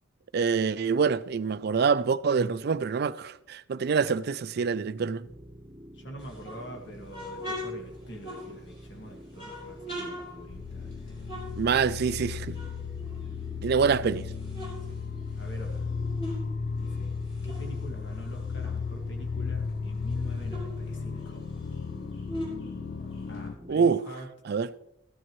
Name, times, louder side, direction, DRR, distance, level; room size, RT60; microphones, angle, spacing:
voice 1, 0.3-5.3 11.6-12.6 13.6-14.2 23.7-24.0 24.5-24.7, right 5 dB, 55° right, 0.4 m, -25 dB
sound 1, 5.2-23.8, equal, 20° right, 1.1 m, -48 dB
voice 2, 5.9-11.2 13.9-14.1 14.9-15.0 15.3-15.9 16.8-17.2 17.4-21.5 23.3-24.3, right 1 dB, 65° left, 1.9 m, -45 dB
sound 2, 6.2-8.9 9.3-12.2 12.5-13.8 14.2-16.5 16.8-19.3 19.7-19.8 20.0-23.5, left 1 dB, 30° left, 5.6 m, -42 dB
sound 3, 10.5-23.5, left 5 dB, 50° left, 0.3 m, -35 dB
14.5 x 12.5 x 3.1 m
head